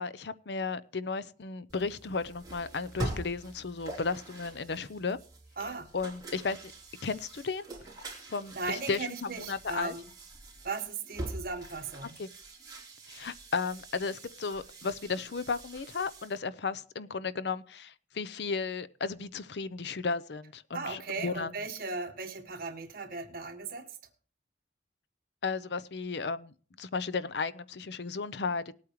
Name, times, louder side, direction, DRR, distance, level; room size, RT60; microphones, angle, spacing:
voice 1, 0.0-5.2 5.9-6.7 7.0-7.7 8.3-9.9 12.2-12.3 13.1-21.5 25.4-28.7, left 4 dB, 70° left, 0.6 m, -34 dB
sound 1, 1.7-16.4, right 2 dB, 20° right, 3.3 m, -44 dB
voice 2, 5.6-5.9 8.5-10.1 10.6-12.1 20.7-23.9, right 3 dB, 55° right, 1.6 m, -37 dB
19.5 x 8.6 x 3.0 m
head